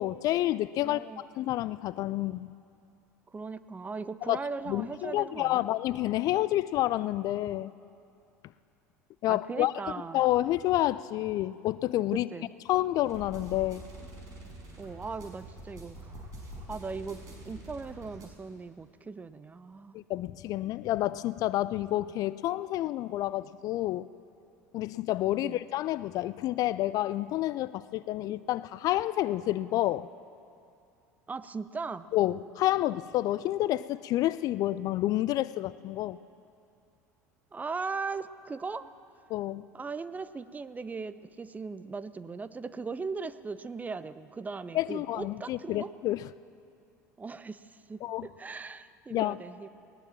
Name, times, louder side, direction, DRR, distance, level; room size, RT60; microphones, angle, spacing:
voice 1, 0.0-2.5 4.2-4.4 4.7-7.7 9.2-9.8 10.1-12.3 12.7-13.8 19.9-24.1 24.7-30.1 32.1-36.2 39.3-39.6 44.7-46.3 48.0-48.3 49.1-49.4, left 15 dB, 40° left, 18 dB, 0.4 m, -29 dB
voice 2, 0.8-1.2 3.3-5.6 9.3-10.2 12.1-12.5 14.8-16.0 16.7-17.2 17.5-20.0 25.4-25.6 31.3-32.1 37.5-38.9 39.7-45.9 47.2-49.7, right 4 dB, 15° right, 14 dB, 0.7 m, -38 dB
sound 1, 13.0-18.3, right 1 dB, 40° right, 5.4 m, -45 dB
19.5 x 19.0 x 7.5 m, 2.5 s
figure-of-eight pair, 70°, 9 cm